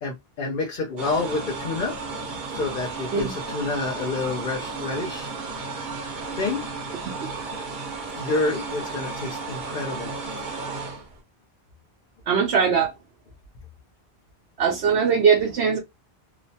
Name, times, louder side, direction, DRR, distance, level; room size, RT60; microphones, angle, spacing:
voice 1, 0.0-1.9 2.5-5.3 6.4-6.6 8.2-10.1, left 3 dB, 55° left, 0.8 m, -28 dB
sound 1, 1.0-11.2, right 4 dB, 55° right, 0.8 m, -34 dB
voice 2, 12.3-12.9 14.6-15.8, right 6 dB, 85° right, 1.0 m, -20 dB
3.0 x 2.1 x 2.7 m
omnidirectional pair, 1.1 m